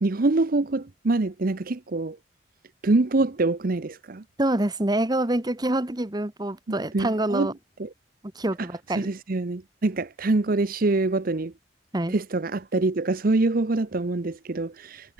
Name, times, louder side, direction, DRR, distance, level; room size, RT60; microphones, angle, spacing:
voice 1, 0.0-2.2 2.8-4.2 6.9-7.5 7.8-7.9 9.0-11.5 12.1-15.1, right 2 dB, 50° right, 0.8 m, -25 dB
voice 2, 4.4-7.5 8.3-9.1 11.9-12.2, right 1 dB, 20° right, 1.3 m, -26 dB
head